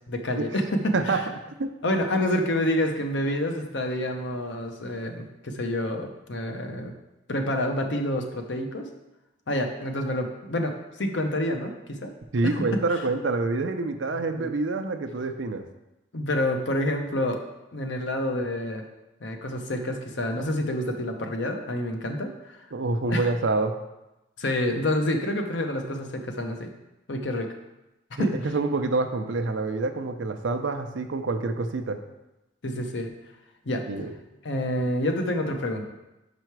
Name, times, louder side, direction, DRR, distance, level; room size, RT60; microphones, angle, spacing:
voice 1, 0.1-1.2 1.8-6.9 7.3-8.9 9.5-12.1 14.1-14.5 16.1-17.4 17.7-18.8 19.2-22.6 23.1-23.3 24.4-26.7 27.1-27.5 28.2-28.5 32.6-33.1 33.7-33.8 34.4-35.8, left 1 dB, 75° left, 4 dB, 0.8 m, -28 dB
voice 2, 12.3-15.6 22.7-23.7 28.2-32.0 33.9-34.1, right 3 dB, 85° right, 7 dB, 0.6 m, -27 dB
5.6 x 5.0 x 4.6 m, 0.97 s
head